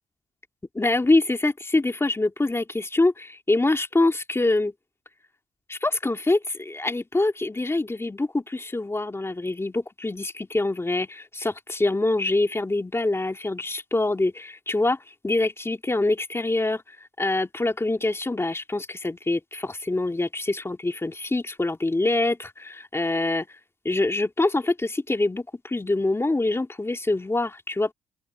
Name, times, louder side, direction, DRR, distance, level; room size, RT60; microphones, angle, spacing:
voice 1, 0.8-4.7 5.7-15.0 15.2-16.8 17.2-23.5 23.8-27.9, left 2 dB, 15° left, 2.7 m, -25 dB
open air
cardioid pair, 85°, 15 cm